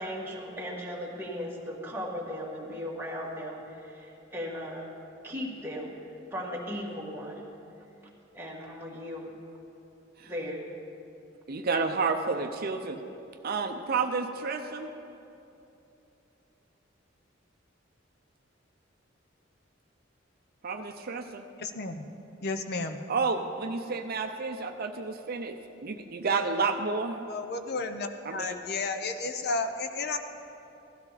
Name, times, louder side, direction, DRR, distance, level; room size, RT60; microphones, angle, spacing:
voice 1, 0.0-4.9 5.2-5.9 6.3-7.4 8.3-9.3 10.2-10.6, equal, 10° right, -3 dB, 1.9 m, -37 dB
voice 2, 11.5-13.0 13.4-14.9 20.6-21.4 23.1-27.3 28.3-28.5, right 4 dB, 50° right, 5 dB, 0.6 m, -30 dB
voice 3, 21.6-22.1 22.4-23.0 27.3-30.2, left 3 dB, 55° left, 8 dB, 0.7 m, -32 dB
16.5 x 13.0 x 4.1 m, 2.8 s
head